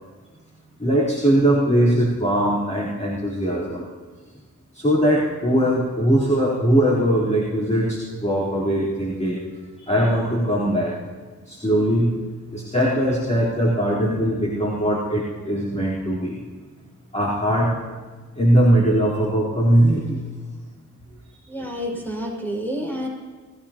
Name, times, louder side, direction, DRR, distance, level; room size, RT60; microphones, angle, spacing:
voice 1, 0.8-3.8 4.7-9.4 9.8-11.0 11.5-12.2 12.5-16.4 17.1-17.8 18.3-20.3 21.6-21.7, right 1 dB, 20° left, -9 dB, 3.9 m, -20 dB
voice 2, 21.5-23.1, equal, 5° left, -3 dB, 5.7 m, -29 dB
23.0 x 16.0 x 3.0 m, 1.4 s
cardioid pair, 80°, 30 cm